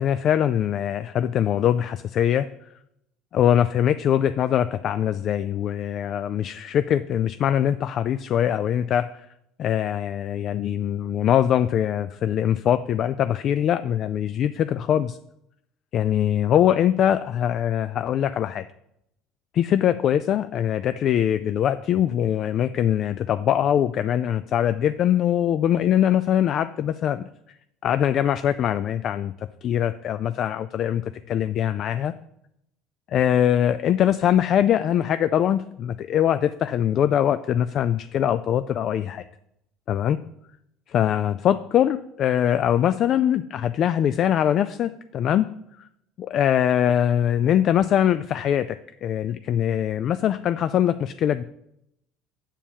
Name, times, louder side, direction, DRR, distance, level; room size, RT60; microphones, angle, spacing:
voice 1, 0.0-2.5 3.3-9.3 9.6-15.2 15.9-18.6 19.5-27.3 27.8-32.1 33.1-39.2 39.9-40.2 40.9-45.5 45.8-45.9 46.2-51.4, left 10 dB, 50° left, 12 dB, 0.3 m, -22 dB
7.3 x 4.6 x 7.0 m, 0.80 s
supercardioid pair, 110°, 0 cm